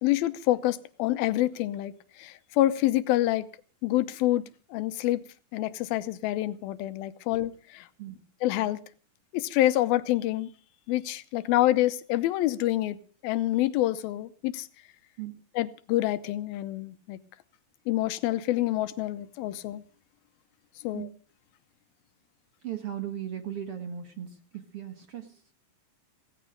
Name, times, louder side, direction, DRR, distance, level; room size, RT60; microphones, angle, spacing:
voice 1, 0.0-1.9 2.2-3.5 3.8-4.4 4.7-5.2 5.5-7.8 8.4-8.8 9.3-10.5 10.9-13.0 13.2-14.7 15.6-17.2 17.9-19.8 20.8-21.1, left 15 dB, 85° left, 13 dB, 2.7 m, -27 dB
voice 2, 22.6-25.4, right 10 dB, 50° right, 7 dB, 1.9 m, -37 dB
16.5 x 16.0 x 5.1 m, 0.39 s
omnidirectional pair, 4.2 m